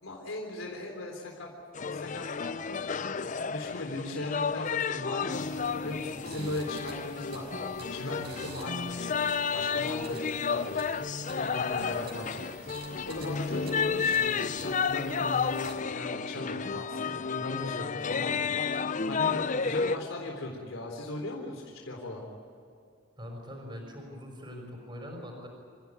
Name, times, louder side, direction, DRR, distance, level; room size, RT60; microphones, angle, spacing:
voice 1, 0.0-1.5 1.9-3.2 3.5-12.6 12.9-22.3, left 2 dB, 85° left, 0 dB, 3.8 m, -38 dB
sound 1, 1.7-20.0, left 5 dB, 40° left, 0.6 m, -31 dB
sound 2, 5.3-15.7, right 4 dB, 55° right, 5.3 m, -49 dB
voice 2, 23.2-25.5, equal, 25° right, 1 dB, 5.4 m, -42 dB
28.0 x 16.0 x 9.7 m, 2.5 s
head